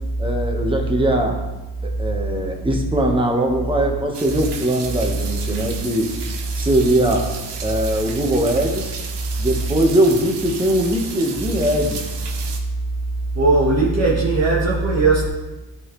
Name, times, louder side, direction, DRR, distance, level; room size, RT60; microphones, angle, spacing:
voice 1, 0.2-1.4 1.8-6.1 6.5-7.3 7.6-9.0 9.4-12.1, right 1 dB, 10° right, 1 dB, 1.4 m, -20 dB
sound 1, 4.1-12.6, right 5 dB, 85° right, 1.0 m, -34 dB
voice 2, 13.3-15.3, right 3 dB, 40° right, -5 dB, 1.5 m, -17 dB
11.5 x 4.1 x 3.2 m, 1.1 s
cardioid pair, 65°, 41 cm